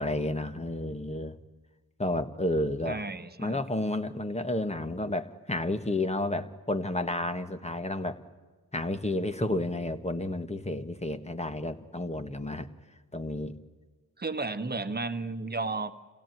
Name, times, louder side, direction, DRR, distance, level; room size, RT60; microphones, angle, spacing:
voice 1, 0.0-1.3 2.0-3.0 3.4-8.2 8.7-12.7 13.1-13.5, left 1 dB, 20° left, 9 dB, 1.4 m, -31 dB
voice 2, 2.9-3.6 14.2-15.9, right 3 dB, 25° right, 8 dB, 1.4 m, -33 dB
27.0 x 17.0 x 9.2 m, 1.4 s
cardioid pair, 85°, 36 cm